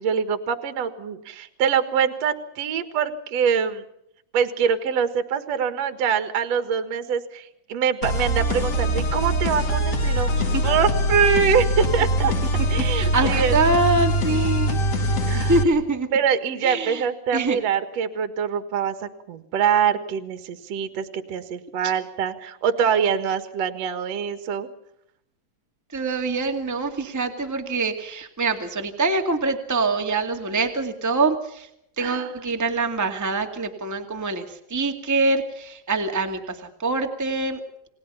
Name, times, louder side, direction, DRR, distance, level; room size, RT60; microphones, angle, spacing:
voice 1, 0.0-3.8 4.3-10.3 10.6-12.3 12.7-13.5 15.3-15.5 16.1-24.7 32.0-32.3, right 7 dB, 55° right, 9 dB, 2.0 m, -24 dB
sound 1, 8.0-15.6, equal, 40° left, 3.3 m, -23 dB
voice 2, 12.9-14.8 15.3-16.1 16.6-17.0 17.3-17.6 25.9-31.7 32.0-37.6, right 3 dB, 20° right, 4 dB, 0.4 m, -24 dB
30.0 x 20.0 x 5.7 m, 0.77 s
omnidirectional pair, 5.0 m